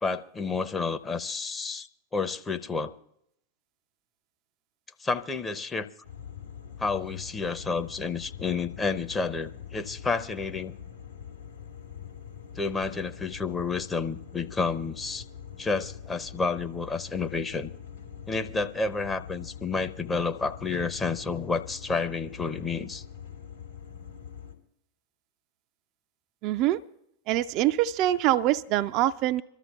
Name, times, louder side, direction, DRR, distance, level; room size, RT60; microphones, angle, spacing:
voice 1, 0.0-1.9 2.1-2.9 5.0-5.9 6.8-10.7 12.5-15.2 15.6-17.7 18.3-23.0, left 4 dB, 15° left, 0.7 m, -30 dB
sound 1, 6.0-24.5, left 8 dB, 80° left, 2.9 m, -44 dB
voice 2, 26.4-26.8 27.3-29.4, right 14 dB, 40° right, 0.4 m, -24 dB
26.5 x 13.0 x 2.3 m
figure-of-eight pair, 90°, 0 cm